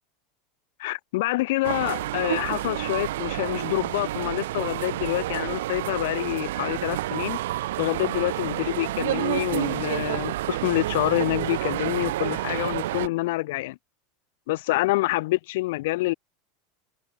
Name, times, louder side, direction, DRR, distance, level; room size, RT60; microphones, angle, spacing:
voice 1, 0.8-7.4 7.8-13.8 14.5-16.1, left 20 dB, 65° left, 0.6 m, -27 dB
sound 1, 1.6-13.1, right 15 dB, 85° right, 0.6 m, -29 dB
supercardioid pair, 170°, 0 cm